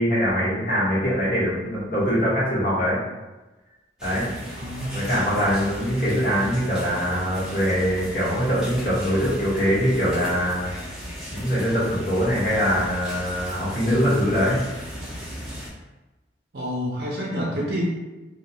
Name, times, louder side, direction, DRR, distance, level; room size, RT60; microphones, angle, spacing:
voice 1, 0.0-3.0 4.0-4.3 4.9-10.7 11.3-14.6, equal, 50° left, -8 dB, 1.0 m, -23 dB
sound 1, 4.0-15.7, equal, 5° right, 0.5 m, -36 dB
voice 2, 4.6-5.3 16.5-17.9, equal, 60° right, -3 dB, 0.5 m, -28 dB
2.4 x 2.2 x 2.8 m, 1.1 s
head